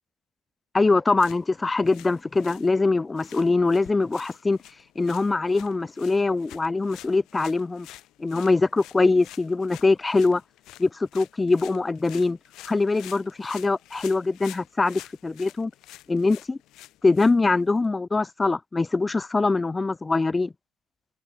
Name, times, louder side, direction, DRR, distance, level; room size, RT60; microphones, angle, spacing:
voice 1, 0.7-4.6 5.0-7.9 8.2-10.4 10.8-12.4 12.7-15.7 16.1-16.6 17.0-20.5, left 3 dB, 15° left, 0.4 m, -23 dB
sound 1, 1.1-17.9, left 15 dB, 65° left, 5.4 m, -49 dB
supercardioid pair, 105°, 0 cm